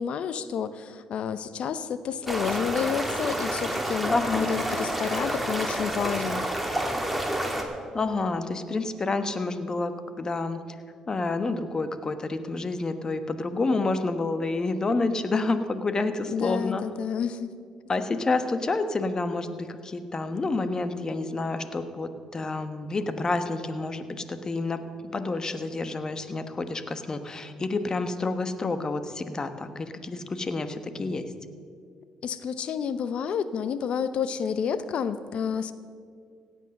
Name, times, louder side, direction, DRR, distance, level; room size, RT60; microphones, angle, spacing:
voice 1, 0.0-6.4 16.3-17.5 32.2-35.7, left 7 dB, 65° left, 13 dB, 0.8 m, -30 dB
sound 1, 2.3-7.6, right 1 dB, 5° right, 2.6 m, -29 dB
voice 2, 4.1-4.5 7.9-10.6 11.1-16.8 17.9-24.8 25.1-31.3, left 3 dB, 35° left, 9 dB, 1.2 m, -29 dB
16.5 x 8.3 x 6.6 m, 2.1 s
supercardioid pair, 65°, 2 cm